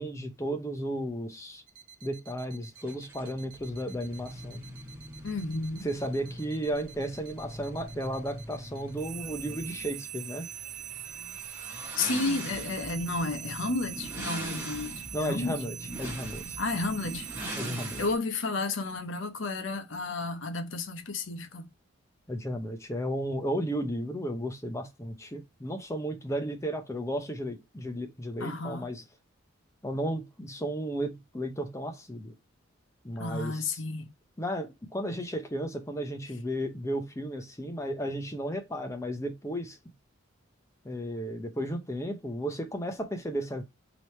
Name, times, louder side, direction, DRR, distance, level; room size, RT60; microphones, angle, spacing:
voice 1, 0.0-1.6 2.0-4.6 5.8-10.5 15.1-16.6 17.6-18.0 22.3-29.0 29.8-32.3 33.0-33.8 34.4-39.8 40.8-43.6, equal, 15° left, 0.6 m, -34 dB
sound 1, 1.7-18.1, right 11 dB, 35° right, 0.4 m, -43 dB
sound 2, 2.8-18.1, right 1 dB, 10° right, 1.1 m, -42 dB
voice 2, 5.2-5.9 12.0-15.6 16.6-17.3 18.0-21.7 28.4-28.9 33.2-34.1, left 3 dB, 65° left, 0.8 m, -32 dB
3.3 x 3.0 x 4.2 m
head